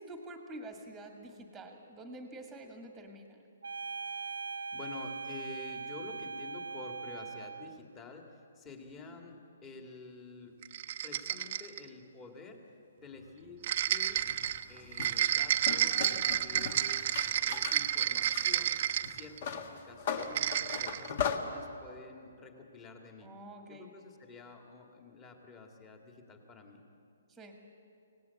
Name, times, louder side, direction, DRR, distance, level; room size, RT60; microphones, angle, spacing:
voice 1, 0.0-3.4 23.2-23.9 27.3-27.5, right 1 dB, ahead, 3 dB, 1.8 m, -47 dB
sound 1, 3.6-7.8, right 4 dB, 80° right, 0.7 m, -40 dB
voice 2, 4.2-10.5 11.0-12.6 13.0-14.2 14.7-17.0 17.4-18.8 19.1-23.3 23.7-26.8, left 3 dB, 15° left, 3 dB, 2.1 m, -49 dB
sound 2, 10.6-11.9 13.6-19.5 20.2-21.1, right 11 dB, 40° right, 0.8 m, -31 dB
sound 3, 14.1-17.8 18.2-21.4, left 7 dB, 40° left, 1.7 m, -38 dB
25.5 x 18.0 x 8.3 m, 2.5 s
hypercardioid pair, 170°, 0 cm